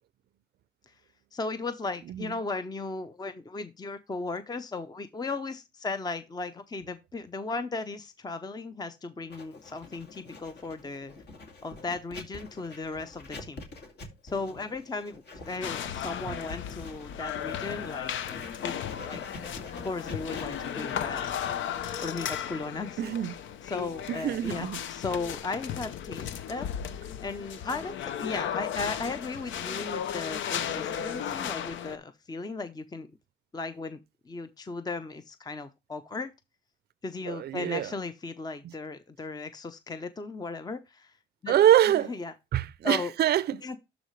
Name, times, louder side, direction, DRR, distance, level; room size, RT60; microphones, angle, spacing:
voice 1, 1.3-11.1 11.6-13.6 14.2-18.1 18.6-18.7 19.0-19.2 19.8-21.4 22.0-23.0 23.6-26.7 27.2-33.1 33.5-34.0 34.3-36.3 37.0-41.1 41.4-41.5 42.1-42.3 42.8-43.1 43.6-43.8, left 3 dB, 20° left, 0.7 m, -36 dB
Writing, 9.3-24.0, left 3 dB, 55° left, 2.4 m, -46 dB
sound 1, 15.6-32.0, left 9 dB, 70° left, 0.7 m, -35 dB
voice 2, 23.0-23.4 24.1-24.8 37.3-37.9 38.6-38.7 41.5-42.1 42.5-43.6, right 11 dB, 55° right, 0.5 m, -25 dB
12.0 x 4.1 x 3.1 m
cardioid pair, 90°, 20 cm